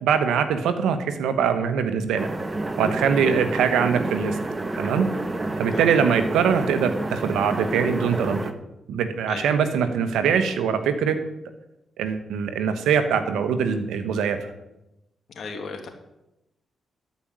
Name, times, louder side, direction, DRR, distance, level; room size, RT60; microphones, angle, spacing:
voice 1, 0.0-2.3 2.8-4.3 4.8-5.1 5.6-8.5 8.9-11.2 12.0-14.4, right 7 dB, 85° right, 9 dB, 1.1 m, -22 dB
sound 1, 2.2-8.5, right 2 dB, 25° right, 1.3 m, -29 dB
voice 2, 15.4-15.9, left 4 dB, 65° left, 4 dB, 2.2 m, -36 dB
12.5 x 5.3 x 8.9 m, 0.91 s
supercardioid pair, 50°, 0 cm